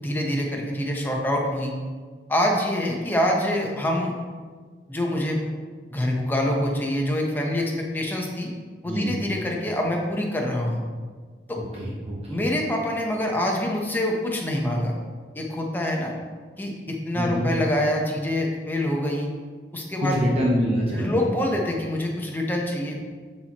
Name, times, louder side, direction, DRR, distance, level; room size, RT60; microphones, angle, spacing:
voice 1, 0.0-1.7 2.3-4.1 4.9-5.4 5.9-8.5 8.8-10.8 11.5-11.6 12.3-15.0 15.3-16.1 16.6-19.3 19.7-20.2 21.0-23.0, left 1 dB, 10° left, -1 dB, 0.9 m, -25 dB
voice 2, 11.5-12.4 17.1-17.5 20.0-21.3, equal, 35° right, -5 dB, 1.0 m, -25 dB
11.0 x 4.4 x 3.0 m, 1.5 s
head